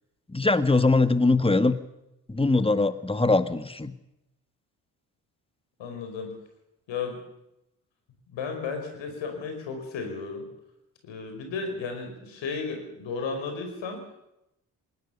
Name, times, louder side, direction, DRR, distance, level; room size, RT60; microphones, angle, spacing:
voice 1, 0.3-1.8 2.3-3.9, left 3 dB, 10° left, 12 dB, 1.6 m, -22 dB
voice 2, 5.8-6.3 6.9-7.2 8.3-10.5 11.0-14.0, left 4 dB, 75° left, 5 dB, 5.2 m, -34 dB
20.5 x 18.0 x 7.0 m, 0.88 s
hypercardioid pair, 50°, 46 cm